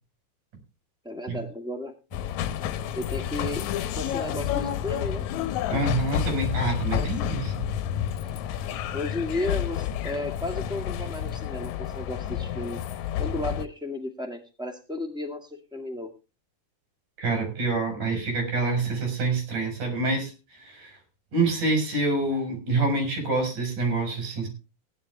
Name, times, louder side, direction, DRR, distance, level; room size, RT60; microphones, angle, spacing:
voice 1, 1.0-1.9 2.9-3.6 4.0-5.3 6.9-7.1 8.9-12.8 13.2-16.1, left 1 dB, ahead, 5 dB, 1.3 m, -33 dB
sound 1, 2.1-13.7, left 10 dB, 75° left, 2.0 m, -30 dB
voice 2, 5.7-7.7 17.2-20.3 20.6-20.9 21.3-24.5, right 3 dB, 80° right, 4 dB, 6.2 m, -26 dB
16.5 x 10.5 x 3.3 m, 0.29 s
omnidirectional pair, 3.6 m